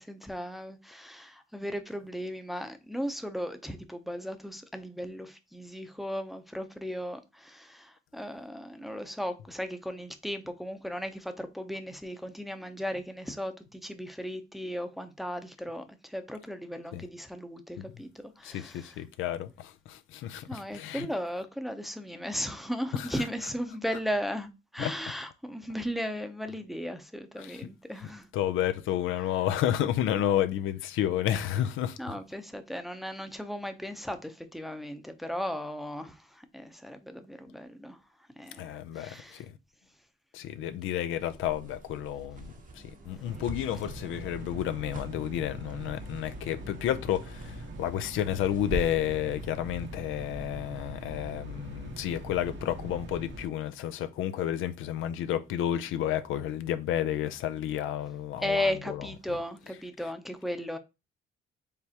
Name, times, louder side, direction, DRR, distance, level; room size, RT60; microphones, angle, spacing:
voice 1, 0.0-18.1 18.4-18.9 20.5-28.3 32.0-36.1 36.5-38.0 38.4-39.4 58.4-60.8, equal, ahead, 0.6 m, -36 dB
voice 2, 18.4-21.1 22.9-23.2 24.8-24.9 27.4-27.7 28.0-32.2 38.6-39.5 40.3-42.5 43.1-59.4, left 11 dB, 85° left, 0.5 m, -31 dB
sound 1, 41.1-49.2, right 3 dB, 40° right, 0.8 m, -44 dB
sound 2, 43.3-53.5, equal, 70° right, 1.0 m, -42 dB
5.0 x 3.4 x 2.9 m
cardioid pair, 90°, 20 cm